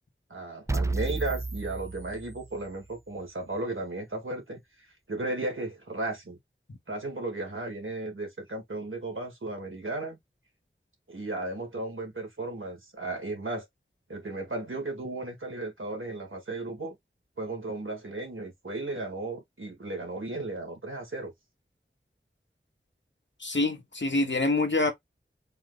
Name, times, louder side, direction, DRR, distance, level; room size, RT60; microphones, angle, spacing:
voice 1, 0.3-4.6 5.1-6.4 6.9-10.2 11.1-13.7 14.1-17.0 17.4-21.3, right 2 dB, 85° right, 1.8 m, -35 dB
sound 1, 0.7-2.7, right 3 dB, 15° right, 0.3 m, -32 dB
voice 2, 23.4-24.9, left 2 dB, 65° left, 1.2 m, -26 dB
4.4 x 2.2 x 3.9 m
wide cardioid pair, 45°, 20 cm